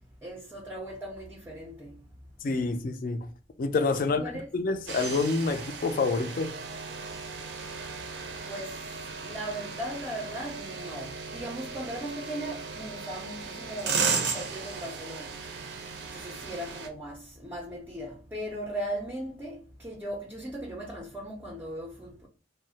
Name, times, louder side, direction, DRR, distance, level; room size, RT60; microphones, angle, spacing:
voice 1, 0.2-2.0 4.0-4.5 8.4-8.8 9.2-15.3 16.1-22.3, right 1 dB, 10° right, 0.4 m, -38 dB
voice 2, 2.4-3.3 3.6-4.2 4.5-6.5, left 3 dB, 50° left, 0.3 m, -27 dB
sound 1, 4.9-16.9, right 5 dB, 80° right, 0.5 m, -36 dB
2.3 x 2.0 x 3.8 m
head